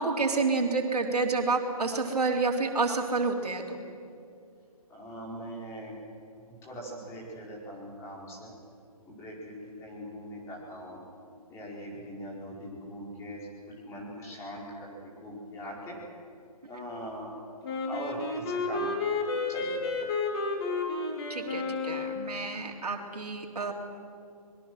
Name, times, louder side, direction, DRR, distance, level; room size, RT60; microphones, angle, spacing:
voice 1, 0.0-3.8 21.3-23.7, right 3 dB, 85° right, 2 dB, 3.2 m, -29 dB
voice 2, 4.9-6.0 6.5-8.5 9.1-11.0 11.5-16.0 16.7-17.3 17.9-18.9 19.5-20.1, equal, 15° left, -4 dB, 5.1 m, -41 dB
Wind instrument woodwind instrument, 17.6-22.4, left 3 dB, 40° left, 3.2 m, -31 dB
26.5 x 21.5 x 6.4 m, 2.4 s
hypercardioid pair, 155°, 19 cm